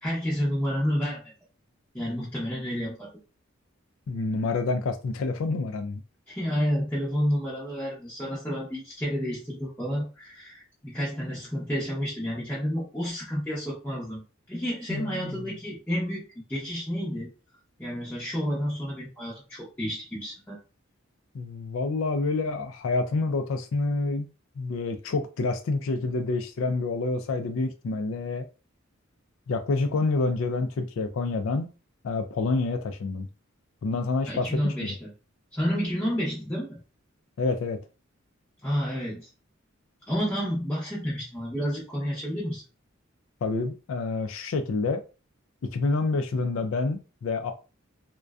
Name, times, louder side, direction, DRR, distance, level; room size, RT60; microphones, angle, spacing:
voice 1, 0.0-1.2 1.9-3.1 6.3-14.2 14.5-16.2 16.5-17.3 17.8-20.6 34.2-35.1 35.5-36.8 38.6-39.3 40.1-42.6, equal, 10° left, 0.7 m, -30 dB
voice 2, 4.1-6.0 14.9-15.4 21.3-24.3 24.6-28.4 29.5-31.7 32.0-33.3 33.8-34.9 37.4-37.8 43.4-45.0 45.6-47.5, left 3 dB, 70° left, 0.4 m, -28 dB
2.5 x 2.2 x 2.3 m
head